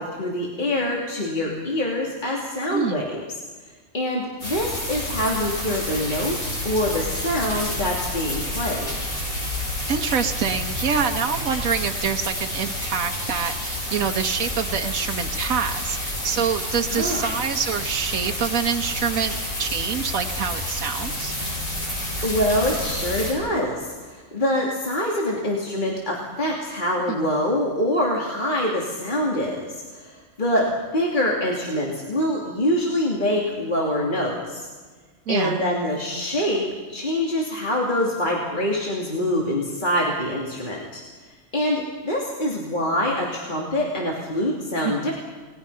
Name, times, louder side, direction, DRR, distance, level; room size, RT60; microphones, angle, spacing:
voice 1, 0.0-3.2 3.9-6.3 6.6-8.9 16.9-17.3 22.2-29.5 29.9-34.6 35.3-36.6 36.9-41.0 41.5-45.1, left 1 dB, 35° left, -2 dB, 3.0 m, -25 dB
voice 2, 2.7-3.0 9.9-21.3 27.1-27.3 35.3-35.7 44.8-45.1, right 7 dB, 80° right, 4 dB, 1.5 m, -26 dB
sound 1, 4.4-23.3, left 1 dB, 85° left, 7.7 m, -29 dB
29.0 x 20.0 x 5.7 m, 1.4 s
omnidirectional pair, 1.4 m